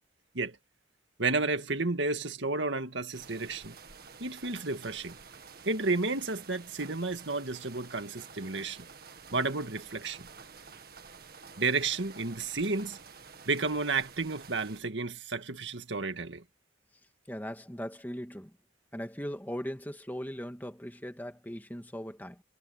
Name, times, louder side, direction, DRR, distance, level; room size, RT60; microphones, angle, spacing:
voice 1, 1.2-3.7 4.2-5.2 5.7-8.9 9.3-10.3 11.6-13.0 13.5-16.4, right 3 dB, 75° right, 2.0 m, -32 dB
sound 1, 3.1-14.8, right 5 dB, 55° right, 1.9 m, -50 dB
voice 2, 17.3-18.5 18.9-22.4, equal, 10° left, 2.0 m, -39 dB
head